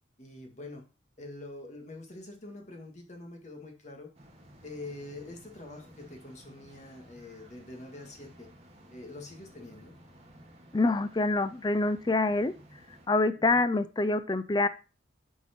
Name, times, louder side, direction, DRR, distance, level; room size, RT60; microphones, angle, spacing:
voice 1, 0.2-0.9 1.2-4.1 4.6-8.5 8.9-10.0 13.4-13.7, left 2 dB, 35° left, 3 dB, 1.8 m, -45 dB
sound 1, 4.1-13.1, right 1 dB, 35° right, 2.0 m, -55 dB
voice 2, 10.7-12.5 13.1-14.7, left 2 dB, 20° left, 13 dB, 0.4 m, -26 dB
9.0 x 4.7 x 4.3 m, 0.33 s
head